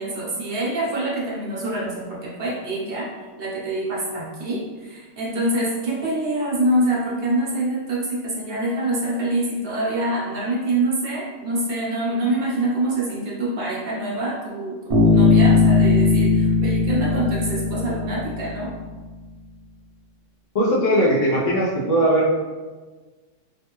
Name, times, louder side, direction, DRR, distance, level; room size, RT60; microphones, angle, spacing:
voice 1, 0.0-3.1 3.4-18.7, right 1 dB, 55° right, -5 dB, 1.0 m, -25 dB
Bass guitar, 14.9-18.7, left 4 dB, 35° right, 0.7 m, -18 dB
voice 2, 20.5-22.3, right 1 dB, 45° left, -7 dB, 0.4 m, -19 dB
3.3 x 2.5 x 3.0 m, 1.3 s
omnidirectional pair, 1.3 m